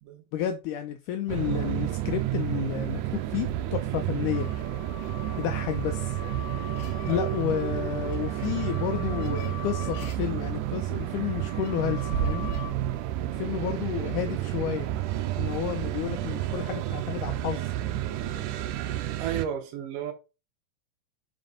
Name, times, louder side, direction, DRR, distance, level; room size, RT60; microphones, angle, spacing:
voice 1, 0.3-4.5 5.4-6.2 7.1-12.5 13.3-14.9 15.4-17.7, left 10 dB, 80° left, 1.8 m, -31 dB
sound 1, 1.3-19.5, right 13 dB, 90° right, 1.8 m, -30 dB
sound 2, 4.3-12.7, left 5 dB, 65° left, 3.0 m, -43 dB
voice 2, 19.2-20.1, right 9 dB, 75° right, 2.3 m, -33 dB
5.2 x 5.2 x 3.8 m
omnidirectional pair, 4.2 m